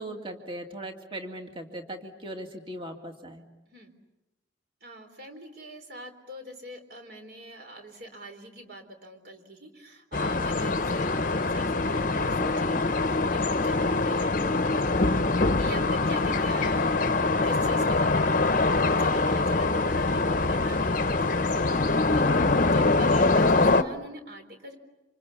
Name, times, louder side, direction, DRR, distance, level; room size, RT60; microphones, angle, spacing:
voice 1, 0.0-3.4, right 1 dB, 25° right, 3 dB, 2.2 m, -39 dB
voice 2, 4.8-17.1 17.4-24.8, right 1 dB, 55° right, 6 dB, 4.0 m, -43 dB
sound 1, 10.1-23.8, left 3 dB, 45° left, 0.9 m, -24 dB
28.0 x 26.5 x 7.1 m, 1.0 s
head